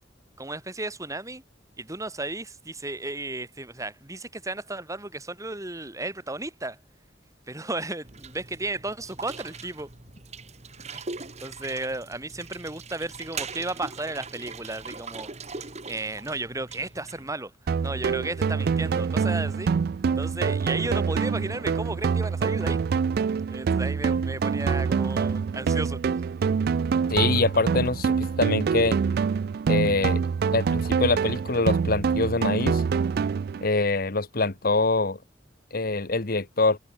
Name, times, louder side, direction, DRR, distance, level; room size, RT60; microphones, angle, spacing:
voice 1, 0.4-1.4 1.8-6.8 7.5-9.9 10.9-11.0 11.4-15.3 15.9-17.5 17.8-19.7 20.2-22.8 23.5-26.0, right 2 dB, 20° right, 3.4 m, -34 dB
sound 1, 8.0-17.3, right 4 dB, 40° right, 2.6 m, -41 dB
sound 2, 17.7-33.7, right 6 dB, 55° right, 0.3 m, -25 dB
voice 2, 27.1-29.0 29.7-30.2 30.5-32.8 33.6-35.2 35.7-36.8, left 3 dB, 55° left, 1.4 m, -24 dB
head